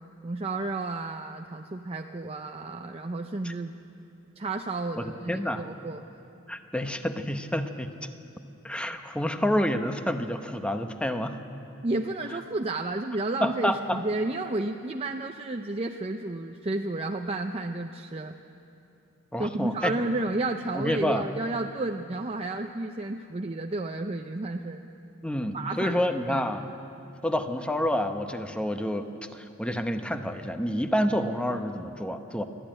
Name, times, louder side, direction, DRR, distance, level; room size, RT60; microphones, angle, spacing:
voice 1, 0.2-3.7 4.4-6.0 11.8-18.4 19.4-24.8 25.5-26.0 26.3-26.4, right 2 dB, 30° right, 3 dB, 0.6 m, -31 dB
voice 2, 5.0-5.6 6.5-7.9 8.6-11.4 13.4-14.0 19.3-19.9 20.7-21.2 25.2-26.7 27.2-29.0 29.3-32.4, equal, 5° left, 7 dB, 0.9 m, -28 dB
23.0 x 13.5 x 8.9 m, 2.7 s
head